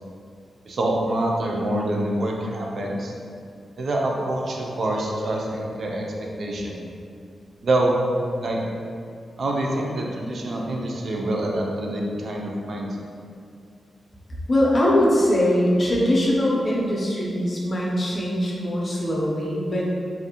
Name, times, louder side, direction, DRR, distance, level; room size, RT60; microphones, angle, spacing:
voice 1, 0.6-3.1 3.8-6.8 7.6-8.0 8.4-8.6 9.4-13.1, right 1 dB, 45° right, -1 dB, 0.3 m, -26 dB
voice 2, 14.5-19.9, left 1 dB, 30° left, -4 dB, 0.4 m, -21 dB
2.4 x 2.0 x 2.7 m, 2.3 s
wide cardioid pair, 175°, 0 cm